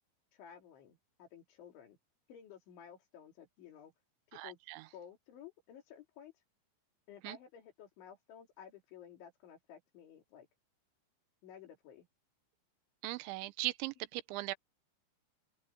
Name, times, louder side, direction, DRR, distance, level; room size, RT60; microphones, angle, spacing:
voice 1, 0.3-2.0 2.3-3.9 4.4-4.6 4.9-6.3 7.1-10.5 11.4-12.1, left 8 dB, 80° left, 5.6 m, -54 dB
voice 2, 4.3-4.9 7.2-7.4 13.0-14.5, right 19 dB, 90° right, 3.0 m, -39 dB
open air
omnidirectional pair, 5.3 m